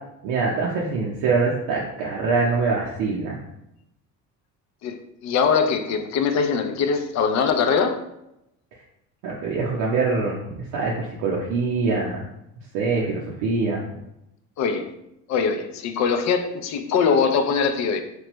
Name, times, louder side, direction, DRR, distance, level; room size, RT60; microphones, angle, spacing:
voice 1, 0.2-3.4 9.2-12.2 12.7-13.8, right 4 dB, 85° right, -3 dB, 0.6 m, -24 dB
voice 2, 4.8-8.0 14.6-14.9 15.3-18.0, left 6 dB, 50° left, 7 dB, 0.4 m, -22 dB
3.0 x 2.2 x 3.0 m, 0.84 s
supercardioid pair, 90°, 35 cm